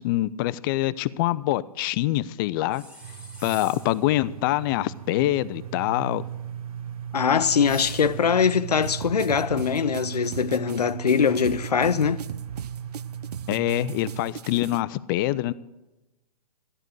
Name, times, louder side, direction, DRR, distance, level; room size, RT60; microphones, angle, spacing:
voice 1, 0.0-2.8 3.4-6.2 13.5-15.5, left 15 dB, 35° left, 0.5 m, -25 dB
sound 1, 2.7-4.1 7.6-8.4, equal, 5° right, 1.7 m, -43 dB
sound 2, 3.0-14.3, right 9 dB, 65° right, 1.2 m, -37 dB
voice 2, 7.1-12.2, left 6 dB, 80° left, 0.7 m, -22 dB
sound 3, 8.8-14.8, right 8 dB, 85° right, 0.4 m, -39 dB
14.0 x 11.0 x 6.3 m
hypercardioid pair, 125°, 20 cm